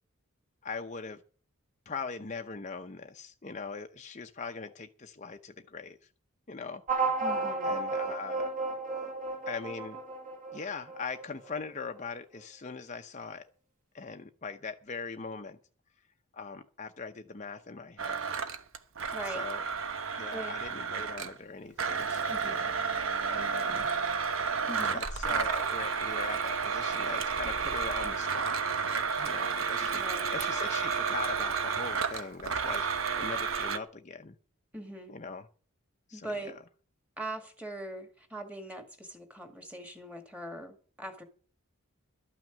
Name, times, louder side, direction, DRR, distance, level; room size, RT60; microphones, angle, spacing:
voice 1, 0.6-1.2 1.9-6.0 6.5-6.8 7.6-8.5 9.5-10.0 10.5-13.4 13.9-15.6 16.3-18.2 19.3-19.6 20.2-22.7 23.3-23.9 24.9-28.6 29.2-34.4 35.1-35.4 36.1-36.3, left 4 dB, 35° left, 6 dB, 0.7 m, -41 dB
sound 1, 6.9-11.8, right 3 dB, 35° right, 2.3 m, -33 dB
voice 2, 7.2-7.8 19.1-19.4 20.3-20.6 22.3-22.6 24.7-25.0 29.8-30.3 34.7-35.1 36.1-36.5 37.2-41.2, right 1 dB, 5° right, 5 dB, 1.9 m, -41 dB
Domestic sounds home sounds, 18.0-21.4 21.8-33.8, right 5 dB, 70° right, 1.1 m, -31 dB
13.0 x 6.1 x 9.2 m, 0.43 s
head